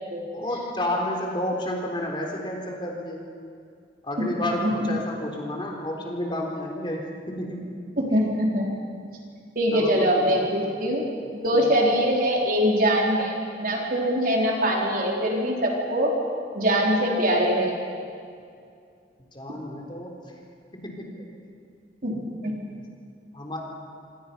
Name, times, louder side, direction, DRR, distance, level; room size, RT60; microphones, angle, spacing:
voice 1, 0.3-3.2 4.0-7.6 8.1-8.3 9.7-10.5 11.5-11.7 19.3-20.1 20.8-21.2 22.5-22.6 23.3-23.6, left 1 dB, 25° left, 0 dB, 3.8 m, -31 dB
voice 2, 4.4-4.7 8.0-8.7 9.6-11.0 11.3-13.3 13.6-16.1 16.5-17.7 22.0-22.1 22.4-22.5, equal, 50° right, -2 dB, 4.4 m, -23 dB
26.5 x 26.5 x 5.7 m, 2.3 s
head